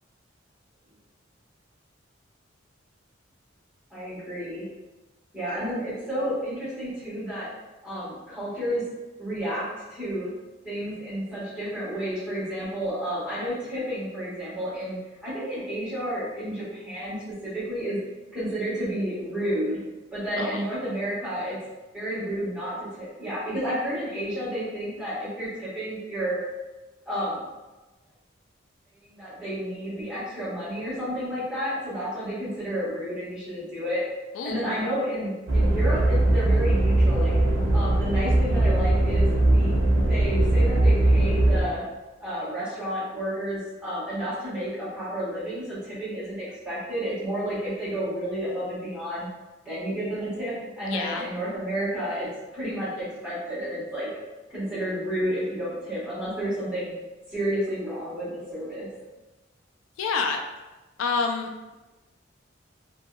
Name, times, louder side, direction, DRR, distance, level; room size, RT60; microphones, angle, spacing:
voice 1, 3.9-4.6 5.3-7.5 7.8-8.8 9.2-10.3 10.6-17.2 17.4-18.0 18.3-19.8 20.1-21.6 21.9-26.4 27.0-27.4 29.0-34.0 34.4-37.3 37.7-39.7 40.1-41.8 42.2-49.3 49.6-52.3 52.5-54.1 54.5-56.9 57.3-58.9, equal, 5° right, -12 dB, 1.3 m, -31 dB
voice 2, 34.3-34.7 50.9-51.3 60.0-60.4 61.0-61.8, left 4 dB, 85° left, 3 dB, 0.3 m, -28 dB
sound 1, 35.5-41.6, right 1 dB, 85° right, 0.6 m, -20 dB
2.8 x 2.6 x 2.3 m, 1.1 s
head